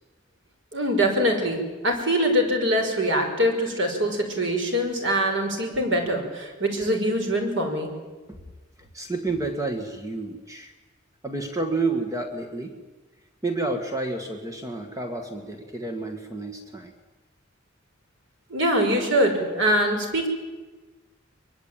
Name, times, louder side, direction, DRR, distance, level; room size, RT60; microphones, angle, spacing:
voice 1, 0.7-7.9 18.5-20.3, equal, 75° right, 4 dB, 5.6 m, -23 dB
voice 2, 8.8-10.7 11.2-12.8 13.4-16.9, right 3 dB, 20° right, 5 dB, 1.8 m, -30 dB
24.0 x 22.5 x 9.0 m, 1.2 s
head